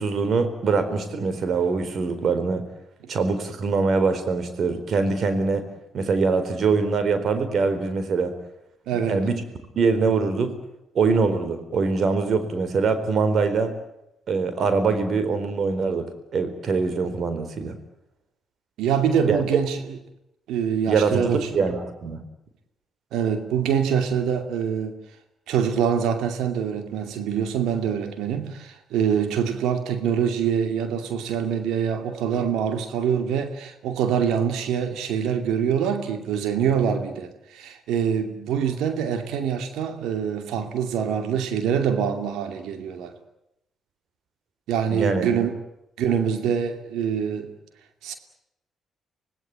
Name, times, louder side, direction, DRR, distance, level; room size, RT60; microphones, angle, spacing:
voice 1, 0.0-2.6 3.1-5.7 5.9-8.3 8.9-9.4 9.8-10.5 10.9-13.7 14.3-17.8 19.3-19.4 20.9-22.2 44.9-45.3, right 4 dB, 60° right, 4.2 m, -23 dB
voice 2, 8.9-9.3 18.8-20.0 20.5-21.5 23.1-25.0 25.5-43.1 44.7-45.5 46.0-47.5 48.0-48.2, right 7 dB, 75° right, 2.6 m, -25 dB
26.0 x 18.0 x 9.0 m
hypercardioid pair, 50°, 0 cm